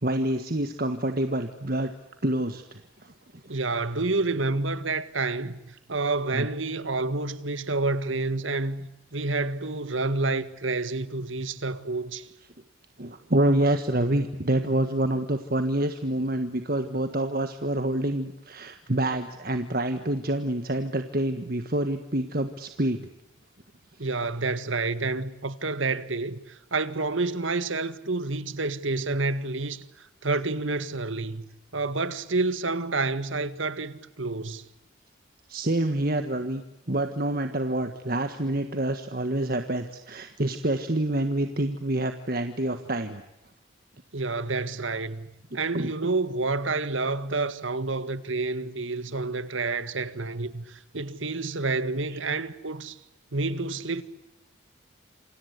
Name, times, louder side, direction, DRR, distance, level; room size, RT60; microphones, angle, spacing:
voice 1, 0.0-1.9 2.2-3.1 3.4-3.5 6.3-6.5 13.0-23.1 35.5-43.2 45.7-45.9 52.1-52.2, right 1 dB, 50° right, 1.6 m, -27 dB
voice 2, 3.5-12.3 24.0-34.6 44.1-45.3 45.5-53.0 53.3-54.0, right 3 dB, 80° right, 1.8 m, -29 dB
28.0 x 26.0 x 8.2 m
head